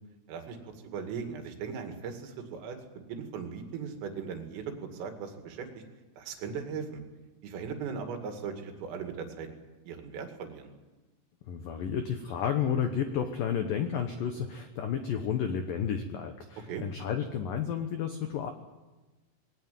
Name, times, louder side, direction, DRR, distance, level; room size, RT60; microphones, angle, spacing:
voice 1, 0.3-2.8 3.1-5.7 6.2-7.0 7.4-9.5 9.9-10.7 16.7-16.8, right 6 dB, 85° right, 5 dB, 4.9 m, -38 dB
voice 2, 11.5-18.5, left 8 dB, 90° left, 6 dB, 1.9 m, -31 dB
21.0 x 18.0 x 9.2 m, 1.2 s
omnidirectional pair, 5.8 m